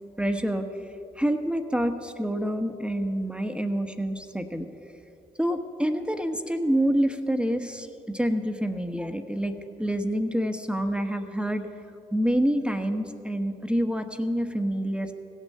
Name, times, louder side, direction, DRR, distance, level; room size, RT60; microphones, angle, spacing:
voice 1, 0.2-0.7 1.2-4.7 5.4-9.5 9.8-11.7 12.1-15.1, equal, 5° right, 6 dB, 1.1 m, -27 dB
16.5 x 6.4 x 7.7 m, 2.6 s
hypercardioid pair, 40°, 19 cm